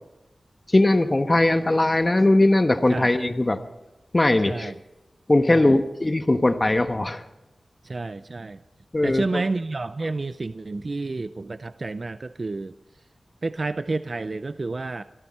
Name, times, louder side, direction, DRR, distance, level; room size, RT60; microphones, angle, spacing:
voice 1, 0.7-3.6 4.1-4.7 5.3-7.2 8.9-9.4, left 2 dB, 35° left, 8 dB, 1.1 m, -20 dB
voice 2, 4.4-4.8 5.5-5.8 7.8-8.6 9.0-13.0 13.4-15.0, right 3 dB, 55° right, 12 dB, 0.5 m, -30 dB
24.0 x 13.5 x 4.3 m, 0.98 s
cardioid pair, 40°, 0 cm